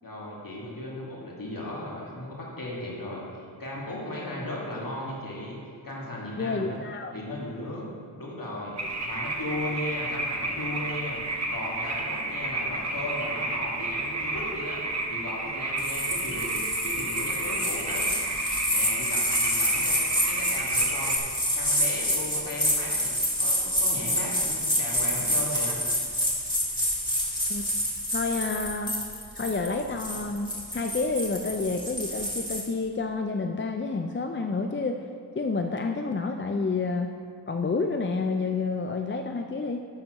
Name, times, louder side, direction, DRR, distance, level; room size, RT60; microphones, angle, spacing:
voice 1, 0.0-5.6 5.8-6.8 7.1-7.8 8.2-8.7 9.0-11.2 11.5-18.1 18.7-20.0 20.3-21.2 21.5-23.1 23.4-25.8, left 1 dB, 50° left, -5 dB, 2.3 m, -36 dB
voice 2, 6.4-7.1 27.5-27.7 28.1-28.9 29.3-35.1 35.3-37.2 37.5-39.9, left 4 dB, 30° left, 4 dB, 0.4 m, -29 dB
sound 1, 8.8-21.2, right 2 dB, 40° right, 1.0 m, -31 dB
sound 2, 15.8-32.6, equal, 10° left, 2.1 m, -28 dB
10.5 x 4.5 x 6.4 m, 2.3 s
wide cardioid pair, 65°, 43 cm